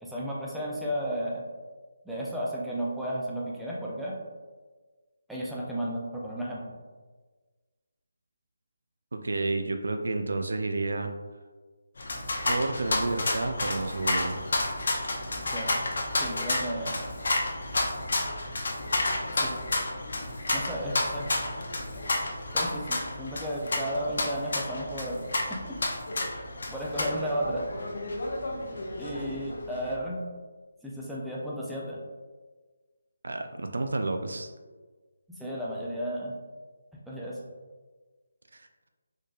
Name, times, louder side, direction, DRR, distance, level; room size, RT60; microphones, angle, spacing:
voice 1, 0.0-1.4 2.0-4.2 5.3-6.7 15.5-15.8 16.2-17.0 19.3-19.6 20.5-21.3 22.5-25.2 25.5-25.6 26.3-26.4 26.7-27.7 29.0-30.2 30.8-32.0 35.4-36.4 37.1-37.4, equal, ahead, -7 dB, 0.5 m, -33 dB
voice 2, 9.1-11.1 12.5-14.4 33.2-34.5 38.5-38.6, right 2 dB, 75° right, 6 dB, 0.4 m, -30 dB
sound 1, 12.0-29.9, left 2 dB, 65° left, 0.6 m, -31 dB
4.2 x 3.2 x 2.4 m, 1.4 s
figure-of-eight pair, 160°, 0 cm